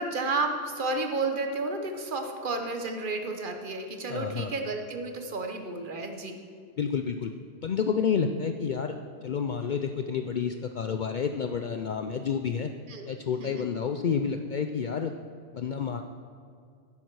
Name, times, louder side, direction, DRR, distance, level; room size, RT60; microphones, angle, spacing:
voice 1, 0.0-6.4 12.9-13.1 13.4-13.7, right 3 dB, 50° right, 5 dB, 1.1 m, -32 dB
voice 2, 4.1-4.5 6.8-7.3 7.6-9.0 9.2-12.7 13.1-15.1 15.5-16.0, left 6 dB, 60° left, 6 dB, 0.5 m, -29 dB
10.5 x 9.7 x 4.7 m, 2.2 s
omnidirectional pair, 1.2 m